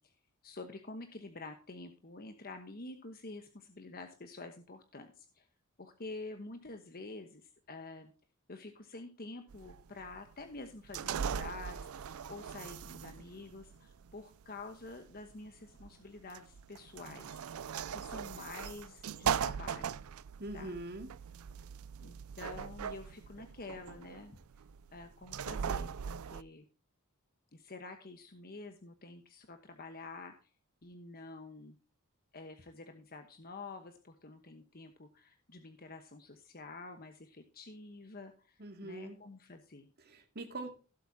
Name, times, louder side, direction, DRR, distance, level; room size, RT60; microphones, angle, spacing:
voice 1, 0.4-5.4 5.8-8.1 8.5-17.6 17.9-20.0 20.5-20.7 22.0-24.4 24.9-26.6 27.5-30.3 30.8-31.8 32.3-39.9, left 3 dB, 40° left, 6 dB, 1.1 m, -48 dB
sound 1, 9.5-26.4, right 7 dB, 70° right, 0.4 m, -40 dB
voice 2, 20.4-21.1 38.6-39.2 40.0-40.7, right 2 dB, 45° right, 5 dB, 2.3 m, -43 dB
16.5 x 7.9 x 2.8 m, 0.37 s
head